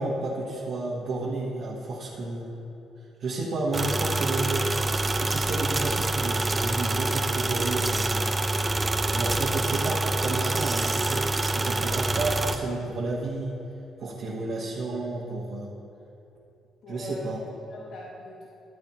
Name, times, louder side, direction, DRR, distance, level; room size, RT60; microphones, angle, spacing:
voice 1, 0.0-2.5 3.2-4.7 4.9-8.4 9.1-11.3 11.5-13.6 14.0-15.7 16.9-17.4, right 2 dB, 65° right, -5 dB, 1.3 m, -31 dB
sound 1, 3.7-12.6, right 2 dB, 25° right, 0.5 m, -26 dB
voice 2, 16.8-18.5, left 2 dB, 75° left, -4 dB, 1.2 m, -41 dB
14.0 x 8.8 x 3.0 m, 2.8 s
cardioid pair, 90°, 0 cm